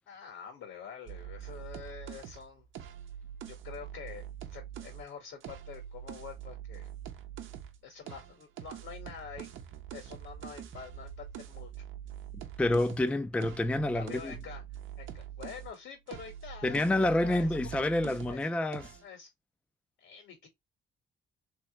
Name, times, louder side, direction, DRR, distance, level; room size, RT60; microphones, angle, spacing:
voice 1, 0.1-2.7 3.5-4.2 4.5-6.9 7.8-9.5 9.9-11.8 13.8-18.5 19.0-19.3 20.0-20.5, left 7 dB, 85° left, 1.6 m, -47 dB
sound 1, 1.1-5.0 5.4-7.8 8.1-15.7 16.1-18.4 18.7-19.0, right 10 dB, 85° right, 0.7 m, -44 dB
voice 2, 12.6-14.3 16.6-18.9, left 1 dB, 5° left, 0.3 m, -28 dB
3.1 x 3.1 x 2.9 m
cardioid pair, 90°, 20 cm